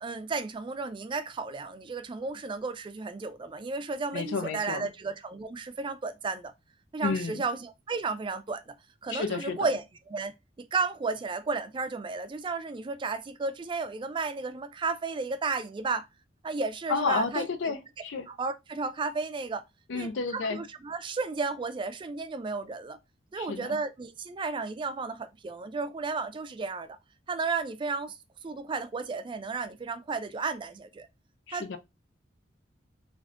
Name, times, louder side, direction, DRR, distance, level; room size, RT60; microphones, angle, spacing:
voice 1, 0.0-6.5 6.9-8.7 9.0-9.8 10.1-10.3 10.6-16.1 16.4-17.7 18.3-19.6 19.9-23.0 23.3-27.0 27.3-31.1 31.5-31.7, right 4 dB, 25° right, 0.3 m, -33 dB
voice 2, 4.1-4.9 7.0-7.4 9.1-9.7 16.9-18.3 19.9-20.6 23.4-23.8 31.5-31.8, left 4 dB, 85° left, 0.4 m, -31 dB
3.4 x 2.6 x 2.4 m
head